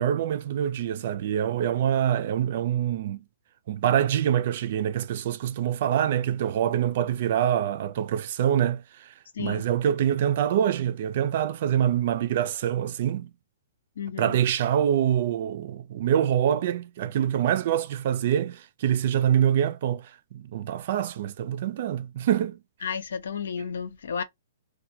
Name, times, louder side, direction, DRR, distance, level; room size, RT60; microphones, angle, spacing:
voice 1, 0.0-3.2 3.7-13.3 14.2-22.6, right 10 dB, 55° right, 0.4 m, -25 dB
voice 2, 14.0-14.3 22.8-24.2, left 7 dB, 75° left, 0.5 m, -32 dB
2.2 x 2.2 x 2.6 m
hypercardioid pair, 150°, 0 cm